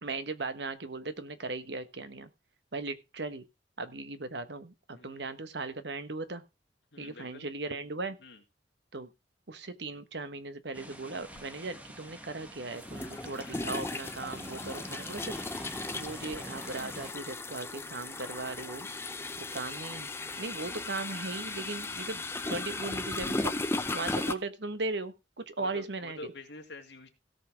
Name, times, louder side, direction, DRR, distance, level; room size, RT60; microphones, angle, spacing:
voice 1, 0.0-2.3 2.7-3.4 3.8-6.4 7.0-8.2 8.9-9.1 9.5-18.9 19.4-20.1 20.4-26.2, right 3 dB, 70° right, 11 dB, 1.3 m, -38 dB
voice 2, 4.9-5.2 6.9-7.5 8.2-8.4 14.5-14.8 25.6-27.1, left 2 dB, 80° left, 4 dB, 2.4 m, -47 dB
sound 1, 10.7-17.1, equal, 10° right, 1.4 m, -47 dB
sound 2, 11.3-11.4 12.8-24.3, left 2 dB, 15° left, 0.7 m, -36 dB
17.0 x 5.7 x 4.7 m, 0.25 s
head